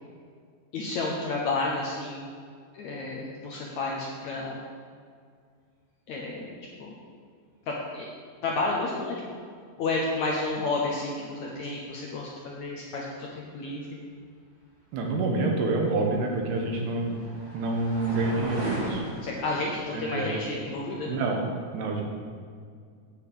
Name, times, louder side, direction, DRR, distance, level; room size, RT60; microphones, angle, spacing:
voice 1, 0.7-2.3 2.7-4.6 6.1-7.0 7.7-8.1 8.4-9.1 9.8-13.9 19.2-21.1, left 3 dB, 70° left, -2 dB, 1.8 m, -31 dB
voice 2, 14.9-17.2 17.5-19.0 19.9-20.3 21.1-21.4 21.7-22.0, right 3 dB, 85° right, 1 dB, 3.5 m, -27 dB
sound 1, 15.7-21.0, right 1 dB, 25° right, 1.5 m, -39 dB
9.0 x 6.5 x 8.4 m, 2.1 s
omnidirectional pair, 4.6 m